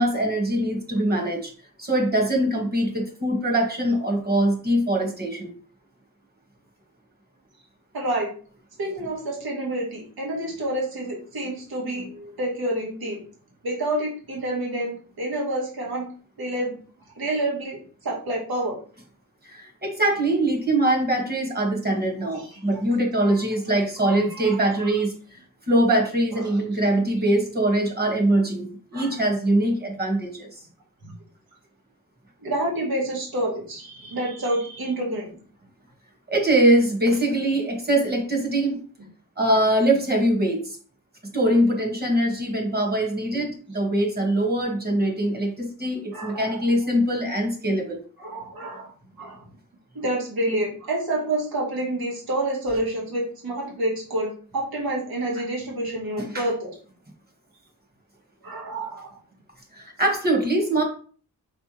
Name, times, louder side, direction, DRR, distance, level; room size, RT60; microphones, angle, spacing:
voice 1, 0.0-1.5 1.8-5.5 19.4-25.4 25.7-28.7 28.9-30.5 36.3-38.8 39.4-40.8 41.3-48.0 56.2-56.5 59.7-60.8, right 1 dB, 25° right, 2 dB, 1.5 m, -23 dB
voice 2, 7.9-8.3 8.8-13.2 13.6-16.1 16.4-16.8 17.2-18.8 22.3-22.6 23.2-23.4 24.0-25.0 26.4-26.6 28.9-29.2 31.0-31.1 32.4-35.3 46.1-46.6 48.2-49.4 49.9-56.7 58.4-59.2, right 1 dB, 85° right, -3 dB, 1.8 m, -28 dB
5.1 x 3.4 x 3.0 m, 0.42 s
wide cardioid pair, 110°, 36 cm